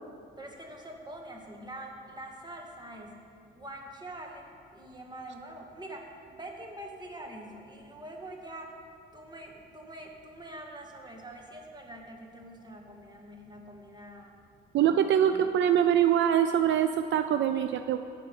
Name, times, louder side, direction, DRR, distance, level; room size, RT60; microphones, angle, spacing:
voice 1, 0.4-3.2 3.6-4.5 4.7-8.8 9.1-14.4 14.9-15.5, right 1 dB, 20° right, 1 dB, 2.0 m, -45 dB
voice 2, 14.7-18.0, right 9 dB, 70° right, 9 dB, 0.5 m, -24 dB
15.5 x 5.8 x 7.0 m, 2.4 s
cardioid pair, 90°, 20 cm